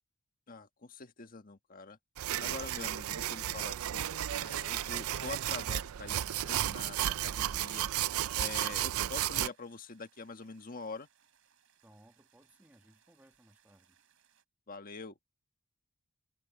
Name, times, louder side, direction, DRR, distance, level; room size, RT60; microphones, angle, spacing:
voice 1, 0.5-2.0 2.4-7.9 8.3-11.1 14.7-15.2, left 3 dB, 40° left, 1.5 m, -45 dB
sound 1, 2.2-9.5, right 12 dB, 85° right, 0.4 m, -33 dB
sound 2, 3.9-14.4, right 8 dB, 65° right, 6.8 m, -70 dB
voice 2, 11.8-14.0, right 1 dB, 10° right, 1.7 m, -62 dB
head